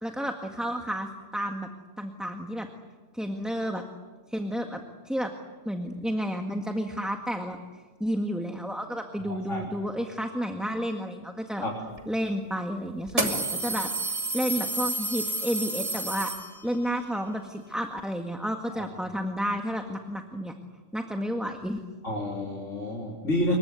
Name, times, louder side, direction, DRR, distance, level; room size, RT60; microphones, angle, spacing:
voice 1, 0.0-1.7 2.0-2.7 3.1-3.8 4.3-5.3 5.7-7.6 8.0-11.6 12.1-16.3 16.6-20.5 20.9-21.8, equal, ahead, 3 dB, 1.7 m, -31 dB
voice 2, 9.3-9.8 11.6-11.8 22.0-23.6, left 1 dB, 85° left, -2 dB, 4.1 m, -29 dB
sound 1, 12.0-12.1 13.1-16.9, right 2 dB, 30° right, 3.0 m, -30 dB
28.0 x 23.5 x 8.3 m, 1.3 s
omnidirectional pair, 1.2 m